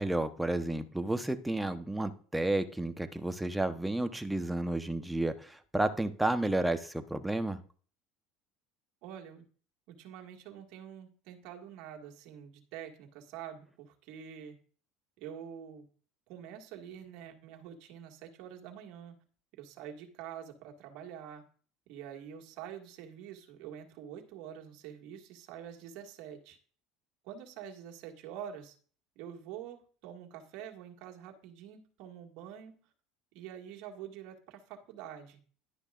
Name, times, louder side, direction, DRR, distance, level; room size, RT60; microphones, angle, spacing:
voice 1, 0.0-7.6, right 2 dB, 5° right, 8 dB, 1.0 m, -31 dB
voice 2, 9.0-9.4 9.9-14.6 15.2-15.9 16.3-19.1 19.6-21.4 21.9-26.6 27.2-28.8 29.2-32.8 33.3-35.4, right 9 dB, 65° right, 2 dB, 2.0 m, -46 dB
11.5 x 9.9 x 2.5 m, 0.44 s
hypercardioid pair, 80°, 0 cm